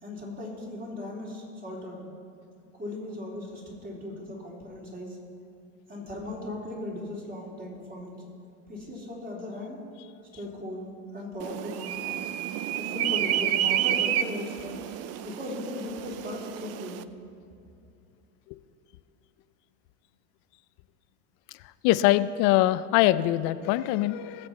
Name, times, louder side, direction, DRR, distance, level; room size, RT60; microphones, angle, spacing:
voice 1, 0.0-2.0 2.8-5.2 5.9-8.2 8.7-9.9 10.3-12.3 12.8-14.8 15.2-17.0, left 1 dB, 25° right, -3 dB, 3.5 m, -37 dB
sound 1, 11.4-17.0, right 11 dB, 40° right, 0.5 m, -30 dB
voice 2, 21.8-24.5, left 15 dB, 55° left, 14 dB, 0.6 m, -23 dB
20.0 x 7.7 x 4.4 m, 2.7 s
supercardioid pair, 115°, 38 cm